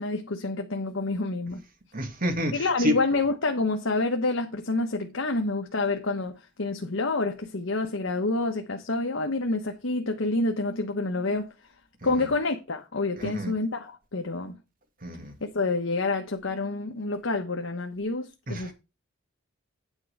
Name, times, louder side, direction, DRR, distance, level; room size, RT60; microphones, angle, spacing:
voice 1, 0.0-1.6 2.5-6.3 6.6-11.5 12.0-14.6 15.4-18.7, left 3 dB, 80° left, 1.2 m, -28 dB
voice 2, 1.9-3.0 12.0-12.1 13.2-13.5 15.0-15.3 18.5-18.7, left 1 dB, 45° right, 2.1 m, -29 dB
9.6 x 4.5 x 6.5 m
head